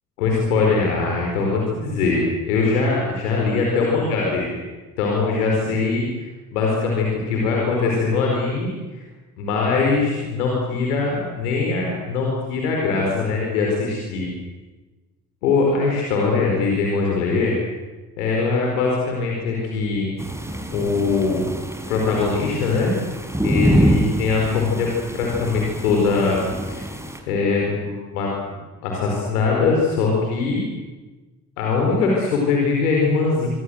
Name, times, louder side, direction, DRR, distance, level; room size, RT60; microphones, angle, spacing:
voice 1, 0.2-2.2 2.5-4.6 5.0-6.2 6.5-9.0 9.4-14.3 15.4-17.5 18.2-20.1 20.7-21.5 21.9-22.9 23.4-24.9 25.2-26.4 26.7-26.9 27.3-28.3 28.8-30.6 31.6-33.5, left 4 dB, 75° left, -1 dB, 4.9 m, -21 dB
sound 1, 20.2-27.2, right 1 dB, 5° right, 6.0 m, -25 dB
25.5 x 24.5 x 8.0 m, 1.2 s
figure-of-eight pair, 45°, 45 cm